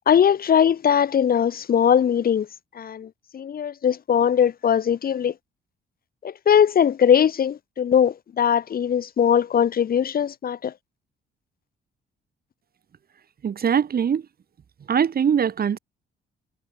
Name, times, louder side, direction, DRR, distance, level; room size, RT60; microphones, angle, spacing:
voice 1, 0.1-2.5 2.8-5.3 6.2-10.7, left 8 dB, 50° left, 0.9 m, -20 dB
voice 2, 13.4-14.2 14.9-15.8, right 8 dB, 50° right, 2.3 m, -21 dB
cardioid pair, 90°, 20 cm